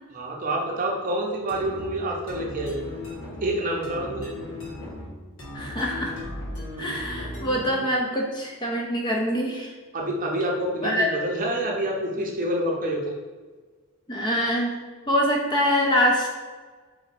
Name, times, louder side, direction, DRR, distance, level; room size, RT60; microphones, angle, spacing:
voice 1, 0.1-2.8 3.4-4.3 9.9-13.0, right 1 dB, 40° right, -1 dB, 0.7 m, -27 dB
sound 1, 1.5-8.0, left 1 dB, 60° left, 1.5 m, -37 dB
voice 2, 5.5-6.1 6.8-9.7 10.8-11.1 14.1-14.8 15.1-16.3, equal, 20° left, -1 dB, 0.5 m, -24 dB
4.2 x 2.6 x 4.1 m, 1.4 s
head